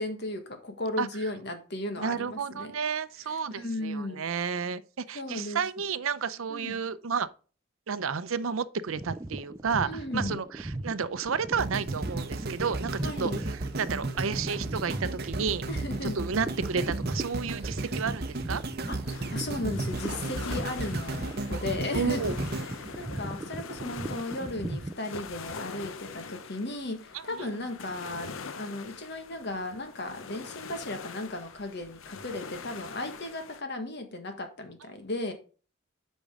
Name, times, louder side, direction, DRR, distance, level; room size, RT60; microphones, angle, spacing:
voice 1, 0.0-2.7 3.3-4.2 5.1-5.6 6.5-6.8 9.8-10.4 13.0-13.4 15.7-16.2 18.9-22.3 22.6-35.3, left 2 dB, 55° left, 1.6 m, -36 dB
voice 2, 2.0-7.3 7.9-15.6 16.0-18.6 21.9-22.4 27.1-27.6, right 6 dB, 80° right, 0.6 m, -31 dB
sound 1, 8.9-25.0, right 1 dB, 15° right, 0.4 m, -37 dB
sound 2, 11.6-23.8 24.3-24.4, right 2 dB, 50° right, 0.9 m, -35 dB
sound 3, 19.1-33.6, left 5 dB, 75° left, 0.7 m, -43 dB
8.3 x 5.3 x 3.6 m
head